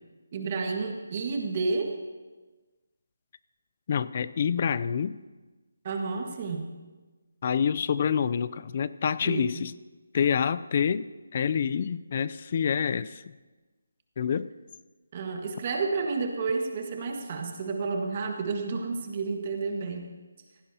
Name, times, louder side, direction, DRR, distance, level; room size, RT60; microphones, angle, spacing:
voice 1, 0.3-1.9 5.8-6.8 9.2-9.6 15.1-20.1, right 4 dB, 35° right, 3 dB, 1.6 m, -31 dB
voice 2, 3.9-5.2 7.4-9.7 10.1-13.2 14.2-14.5, left 7 dB, 40° left, 17 dB, 0.4 m, -27 dB
17.0 x 16.0 x 2.8 m, 1.3 s
figure-of-eight pair, 160°, 0 cm